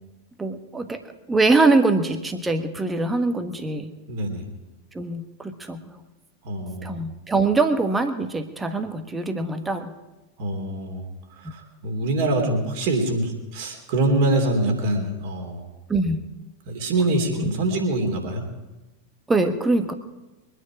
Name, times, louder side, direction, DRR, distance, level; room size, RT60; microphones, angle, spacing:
voice 1, 0.4-1.0 1.3-3.9 4.9-5.8 6.8-9.9 11.4-11.5 15.9-16.2 17.1-17.5 19.3-19.9, right 3 dB, 10° right, 7 dB, 1.3 m, -23 dB
voice 2, 4.1-4.4 6.4-7.0 10.4-11.0 11.4-15.7 16.7-18.4, right 2 dB, 50° right, 3 dB, 3.3 m, -24 dB
23.5 x 10.0 x 4.8 m, 1.0 s
figure-of-eight pair, 90°, 0 cm